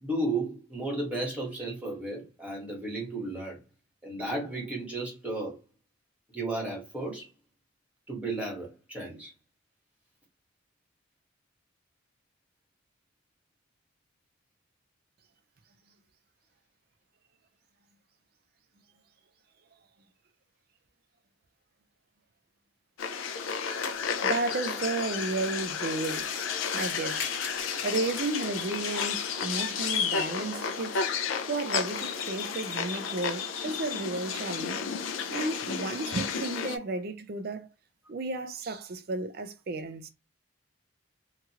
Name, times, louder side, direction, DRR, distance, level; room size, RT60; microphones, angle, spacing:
voice 1, 0.0-3.6 4.0-5.6 6.3-7.3 8.1-9.3, right 2 dB, 5° right, 1.3 m, -33 dB
sound 1, 23.0-36.8, left 6 dB, 85° left, 0.4 m, -32 dB
voice 2, 24.2-26.3 26.7-27.3 27.8-31.0 31.5-34.8 35.3-37.7 38.1-40.1, right 3 dB, 50° right, 0.4 m, -33 dB
sound 2, 25.9-28.9, left 5 dB, 60° left, 1.0 m, -40 dB
2.9 x 2.4 x 2.8 m
head